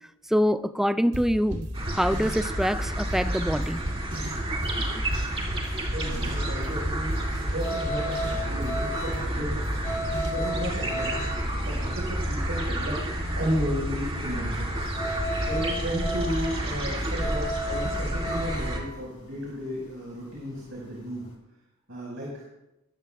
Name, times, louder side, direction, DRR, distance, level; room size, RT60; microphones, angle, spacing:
voice 1, 0.3-3.8 4.8-5.1, equal, ahead, 0.4 m, -25 dB
sound 1, 1.1-10.3, equal, 85° right, 3.4 m, -35 dB
sound 2, 1.7-18.8, right 1 dB, 25° right, 2.2 m, -30 dB
sound 3, 3.3-21.3, equal, 35° left, 3.3 m, -36 dB
voice 2, 5.9-11.1 11.5-13.0 13.4-14.7 15.4-21.3 21.9-22.3, equal, 65° right, 5.2 m, -33 dB
22.0 x 14.5 x 2.4 m
head